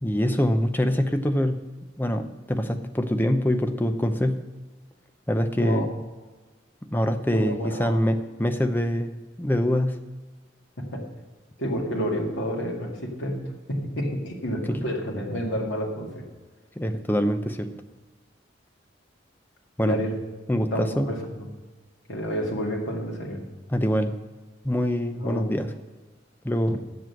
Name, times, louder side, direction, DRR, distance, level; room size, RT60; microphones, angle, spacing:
voice 1, 0.0-1.6 2.0-4.4 5.3-5.9 6.9-9.1 9.4-10.0 14.7-14.8 16.8-17.7 19.8-20.0 20.5-21.1 23.7-24.1 24.6-25.7 26.4-26.8, equal, 10° left, 7 dB, 0.6 m, -24 dB
voice 2, 5.6-5.9 7.3-8.1 10.9-11.0 11.6-16.2 19.8-20.1 20.7-21.5 22.1-23.5 25.2-25.5 26.7-26.8, equal, 80° left, -1 dB, 2.0 m, -30 dB
7.7 x 7.6 x 7.7 m, 1.3 s
head